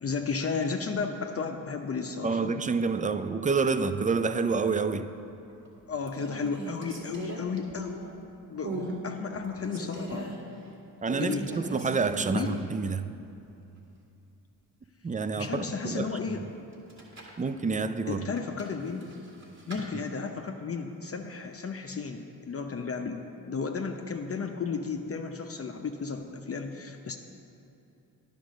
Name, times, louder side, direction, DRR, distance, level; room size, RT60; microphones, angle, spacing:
voice 1, 0.0-2.5 4.8-5.0 5.9-8.0 8.5-10.4 11.2-11.5 12.3-12.7 15.4-16.4 18.1-19.1 19.7-23.2 23.4-27.2, left 5 dB, 35° left, 4 dB, 0.7 m, -33 dB
voice 2, 2.2-5.1 11.0-13.1 15.0-16.5 17.4-18.2 19.8-20.0, right 4 dB, 20° right, 11 dB, 0.4 m, -28 dB
sound 1, 5.3-5.7 6.0-8.2 8.6-9.0 9.3-10.4 11.0-12.8 13.1-13.2 16.7-17.4 18.3-19.8, right 2 dB, 45° right, 2.2 m, -39 dB
10.5 x 5.1 x 6.4 m, 2.8 s
supercardioid pair, 45°, 39 cm